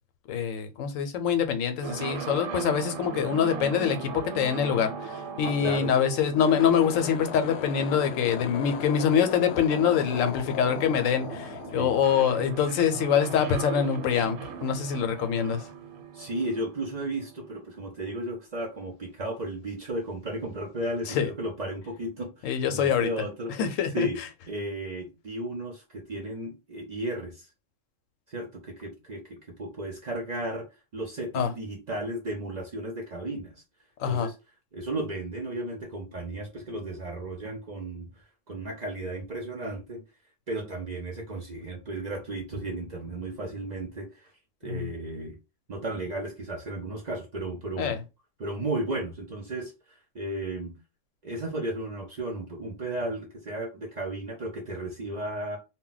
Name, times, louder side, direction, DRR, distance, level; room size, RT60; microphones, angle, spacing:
voice 1, 0.3-15.7 21.1-21.3 22.4-23.1 23.6-24.3 31.3-31.5 34.0-34.3 44.6-44.9 47.8-48.0, left 8 dB, 90° left, 1.0 m, -25 dB
sound 1, 1.8-17.6, right 6 dB, 85° right, 1.0 m, -39 dB
voice 2, 5.4-5.9 11.8-12.0 16.1-23.5 23.9-24.2 24.5-27.5 28.3-30.7 30.9-33.5 34.1-34.3 34.7-38.1 38.5-40.0 40.5-44.3 44.6-45.4 45.7-48.0 48.4-49.7 50.1-50.7 51.2-55.6, right 1 dB, 50° right, 0.5 m, -34 dB
sound 2, 6.3-12.7, left 7 dB, 65° left, 0.7 m, -37 dB
2.2 x 2.1 x 3.8 m
omnidirectional pair, 1.3 m